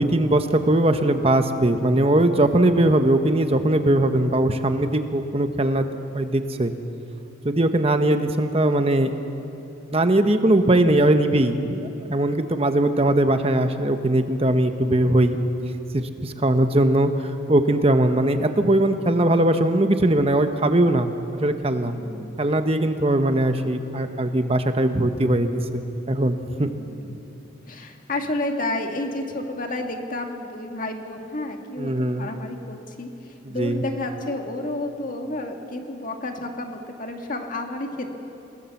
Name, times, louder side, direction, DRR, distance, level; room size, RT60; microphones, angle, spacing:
voice 1, 0.0-6.7 7.4-9.1 9.9-15.4 15.9-22.0 22.4-26.7 31.8-32.3 33.4-33.8, right 1 dB, 30° right, 7 dB, 1.0 m, -20 dB
voice 2, 21.9-22.4 26.6-27.1 27.7-38.1, left 2 dB, 40° left, 3 dB, 2.0 m, -31 dB
28.5 x 18.5 x 7.2 m, 2.9 s
head